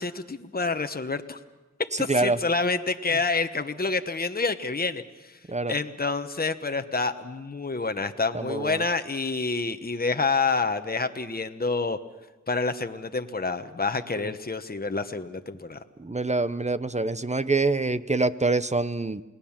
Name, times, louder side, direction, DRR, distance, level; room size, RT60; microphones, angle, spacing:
voice 1, 0.0-1.4 2.0-5.4 5.7-12.0 12.5-15.8, left 4 dB, 30° left, 8 dB, 1.1 m, -28 dB
voice 2, 8.3-8.8 14.2-14.3 16.0-19.2, right 3 dB, 25° right, 14 dB, 0.7 m, -25 dB
29.0 x 18.5 x 7.3 m, 1.2 s
wide cardioid pair, 60°, 30 cm